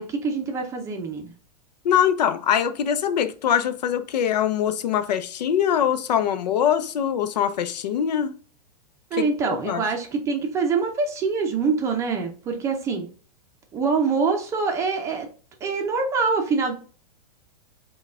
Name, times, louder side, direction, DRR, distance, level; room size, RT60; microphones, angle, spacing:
voice 1, 0.0-1.3 9.1-13.1 13.7-15.3 15.6-16.7, right 4 dB, 15° right, 0.5 m, -25 dB
voice 2, 1.8-8.4 9.1-9.8, left 9 dB, 80° left, 0.7 m, -23 dB
5.4 x 2.3 x 3.5 m
supercardioid pair, 160°, 21 cm